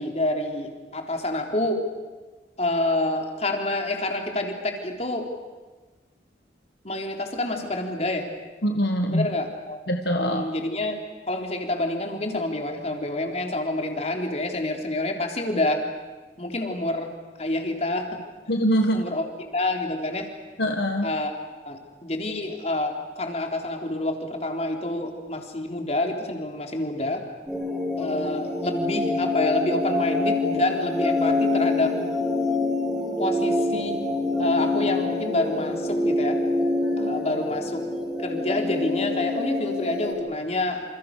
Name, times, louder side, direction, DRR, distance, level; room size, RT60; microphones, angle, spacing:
voice 1, 0.0-1.8 2.6-5.3 6.8-8.3 9.1-9.8 10.2-11.0 11.3-15.8 16.4-17.1 17.4-18.2 18.9-20.3 21.0-27.2 28.0-32.0 33.2-34.0 34.4-36.4 37.0-37.8 38.2-40.8, left 2 dB, 35° left, 3 dB, 3.8 m, -28 dB
voice 2, 8.6-9.3 9.9-10.4 18.5-19.0 20.6-21.1, equal, 65° left, 4 dB, 1.8 m, -23 dB
sound 1, 27.5-40.1, left 2 dB, 5° right, 6.7 m, -26 dB
29.0 x 28.5 x 6.7 m, 1.3 s
head